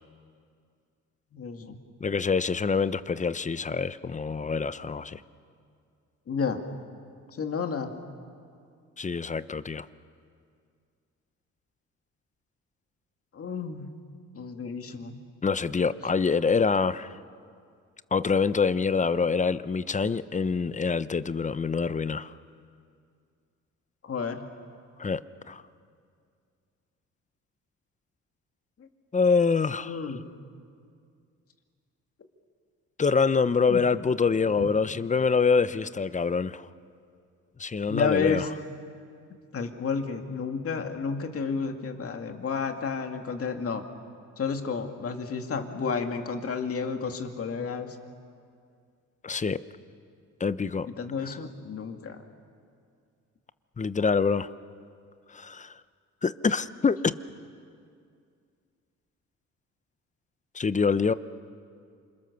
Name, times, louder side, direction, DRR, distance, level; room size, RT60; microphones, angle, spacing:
voice 1, 1.3-1.8 6.3-6.6 7.4-7.9 13.3-14.0 14.3-15.2 24.0-24.5 28.8-28.9 29.8-30.3 33.7-33.9 34.6-34.7 37.9-38.5 39.5-43.8 44.4-48.0 50.9-52.2, left 5 dB, 50° left, 5 dB, 2.4 m, -31 dB
voice 2, 2.0-5.2 9.0-9.9 15.4-17.1 18.1-22.3 25.0-25.2 25.5-25.6 29.1-30.0 33.0-36.7 37.6-38.4 49.2-49.6 50.4-50.9 53.8-54.5 55.3-55.7 56.2-57.1 60.5-61.1, left 5 dB, 25° left, 14 dB, 0.8 m, -25 dB
27.5 x 26.0 x 6.9 m, 2.3 s
cardioid pair, 90°, 30 cm